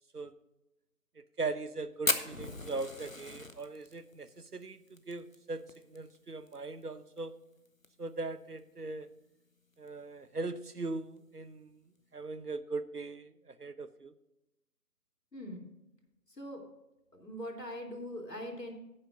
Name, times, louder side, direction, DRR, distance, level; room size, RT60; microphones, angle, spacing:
voice 1, 1.4-5.6 5.9-7.3 8.0-9.1 9.8-11.8 12.1-14.1, right 3 dB, 70° right, 14 dB, 0.9 m, -39 dB
Fire, 2.1-6.6 6.8-6.9 7.2-7.3 7.7-8.1 8.6-8.7 9.7-9.9, left 2 dB, 55° left, 0.9 m, -36 dB
voice 2, 15.3-15.6 16.3-16.6 17.1-18.7, equal, 85° left, 1 dB, 3.3 m, -42 dB
15.5 x 8.7 x 2.6 m, 0.92 s
figure-of-eight pair, 175°, 48 cm